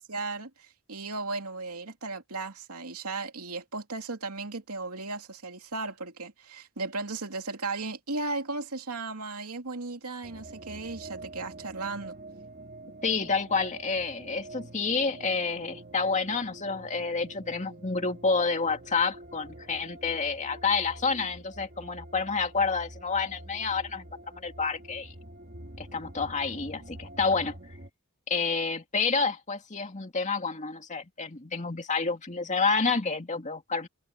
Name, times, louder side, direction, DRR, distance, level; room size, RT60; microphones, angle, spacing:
voice 1, 0.1-12.1, right 3 dB, 85° right, 2.8 m, -36 dB
sound 1, 10.2-27.9, right 1 dB, 45° right, 1.9 m, -46 dB
voice 2, 13.0-24.1 24.3-25.1 25.8-27.6 28.3-33.9, left 4 dB, 35° left, 2.3 m, -29 dB
head